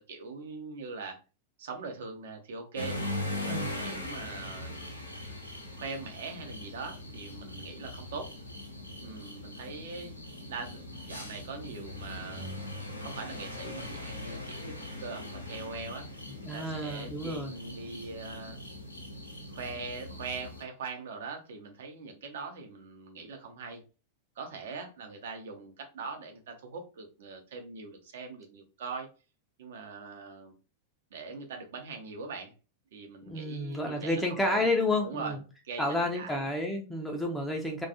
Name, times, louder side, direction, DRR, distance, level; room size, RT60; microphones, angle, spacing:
voice 1, 0.1-1.2 1.6-3.0 3.3-4.9 5.7-8.3 9.0-10.2 10.5-12.6 13.0-16.1 16.5-18.6 19.5-23.8 24.4-29.1 29.6-30.5 31.1-32.5 32.9-34.7 35.0-35.4 35.6-36.5, right 4 dB, 60° right, 0.6 m, -42 dB
sound 1, 2.7-20.6, left 1 dB, 90° left, 0.5 m, -40 dB
voice 2, 16.4-17.5 33.3-35.3 35.8-37.9, left 2 dB, 5° left, 0.4 m, -30 dB
2.3 x 2.2 x 2.7 m
figure-of-eight pair, 90°, 0 cm